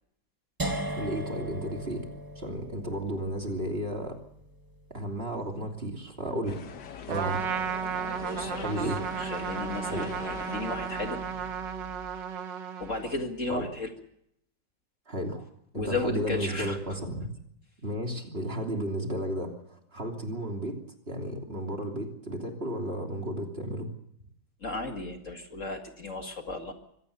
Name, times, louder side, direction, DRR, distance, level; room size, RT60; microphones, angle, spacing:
sound 1, 0.6-6.5, right 1 dB, 10° right, 1.4 m, -39 dB
voice 1, 0.7-2.1 2.3-4.2 4.9-6.6 7.1-7.4 8.6-9.0 9.9-10.1 13.5-13.7 15.1-15.4 15.7-17.3 17.8-20.8 21.1-23.9, right 1 dB, 30° right, 3 dB, 3.2 m, -33 dB
sound 2, 6.5-11.7, left 7 dB, 65° left, 1.8 m, -42 dB
Trumpet, 7.1-13.3, right 7 dB, 75° right, 1.9 m, -34 dB
voice 2, 8.2-11.2 12.8-13.9 15.7-17.0 24.6-26.7, left 2 dB, 40° left, 4 dB, 2.3 m, -35 dB
24.5 x 17.0 x 6.9 m, 0.73 s
omnidirectional pair, 2.0 m